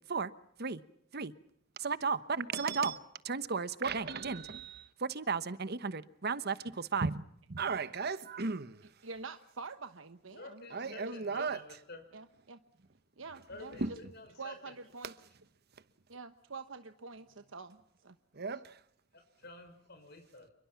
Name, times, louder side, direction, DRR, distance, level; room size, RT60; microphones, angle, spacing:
voice 1, 1.8-3.0 3.2-7.2 7.5-8.8 10.7-11.6 13.8-13.9 18.3-18.8, right 4 dB, 55° right, 1.1 m, -34 dB
voice 2, 2.6-3.0 10.3-12.0 13.5-14.7 19.4-20.5, left 3 dB, 60° left, 5.9 m, -50 dB
voice 3, 9.0-11.5 12.1-12.6 13.2-13.8 14.4-15.1 16.1-18.2, right 4 dB, 85° right, 1.2 m, -47 dB
28.5 x 23.0 x 5.9 m
head